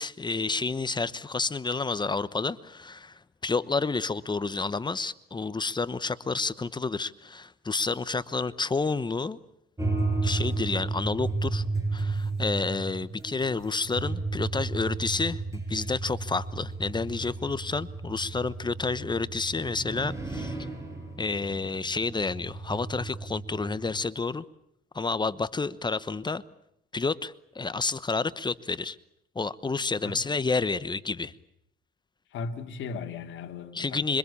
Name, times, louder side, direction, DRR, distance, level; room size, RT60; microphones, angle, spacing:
voice 1, 0.0-9.4 10.2-11.6 11.9-20.6 21.2-24.4 24.9-26.4 26.9-29.0 29.3-31.3 33.7-34.2, left 4 dB, 20° left, 17 dB, 1.0 m, -30 dB
sound 1, 9.8-24.0, right 3 dB, 15° right, 7.0 m, -33 dB
voice 2, 30.0-30.4 32.3-34.2, left 5 dB, 70° left, 5 dB, 2.7 m, -37 dB
26.5 x 24.0 x 8.5 m, 0.75 s
cardioid pair, 95°, 21 cm